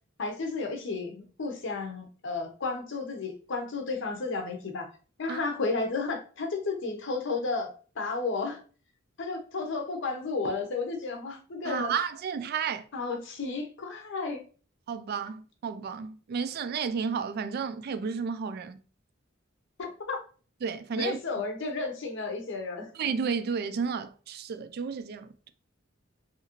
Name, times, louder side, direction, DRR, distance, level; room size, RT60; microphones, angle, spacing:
voice 1, 0.2-4.9 5.2-7.7 8.0-8.6 9.2-12.0 12.9-14.4 19.8-20.2 21.0-22.9, left 3 dB, 60° left, 0.7 m, -32 dB
voice 2, 11.6-12.9 14.9-18.8 20.6-21.2 23.0-25.5, right 6 dB, 50° right, 0.3 m, -32 dB
2.8 x 2.4 x 2.9 m
head